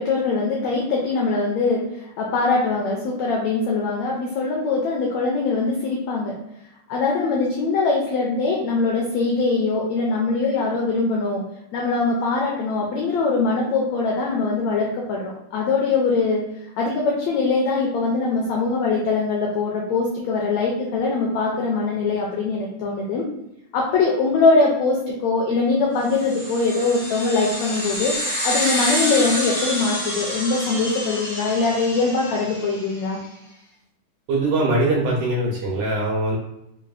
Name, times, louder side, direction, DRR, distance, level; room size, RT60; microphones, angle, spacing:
voice 1, 0.0-1.8 2.2-6.3 6.9-11.4 11.7-16.4 16.8-23.2 23.7-33.2, left 3 dB, 80° left, -2 dB, 1.5 m, -22 dB
sound 1, 26.1-32.9, equal, 40° left, 1.0 m, -28 dB
voice 2, 34.3-36.4, right 2 dB, 75° right, -3 dB, 1.9 m, -22 dB
5.1 x 2.5 x 2.3 m, 0.86 s
omnidirectional pair, 3.7 m